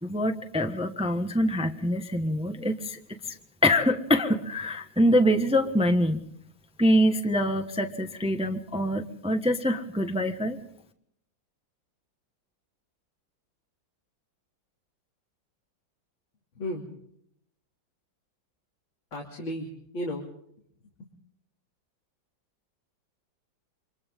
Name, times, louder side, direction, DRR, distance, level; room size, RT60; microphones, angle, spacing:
voice 1, 0.0-3.2 3.6-6.2 6.8-10.6, equal, 5° right, 6 dB, 1.1 m, -25 dB
voice 2, 16.6-16.9 19.1-20.2 21.0-21.1, left 1 dB, 85° left, -2 dB, 3.7 m, -34 dB
29.0 x 25.5 x 3.7 m, 0.70 s
omnidirectional pair, 2.1 m